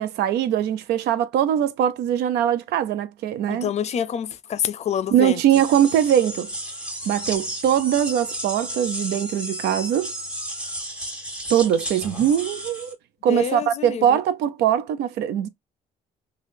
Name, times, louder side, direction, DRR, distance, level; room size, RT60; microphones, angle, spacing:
voice 1, 0.0-3.7 5.1-6.5 7.1-10.1 11.5-12.9 13.2-15.5, right 10 dB, 75° right, 0.5 m, -21 dB
voice 2, 3.5-5.4 13.3-14.2, left 9 dB, 40° left, 0.4 m, -27 dB
sound 1, 5.5-12.9, right 1 dB, 5° right, 1.3 m, -33 dB
3.4 x 2.3 x 2.6 m
cardioid pair, 110°, 17 cm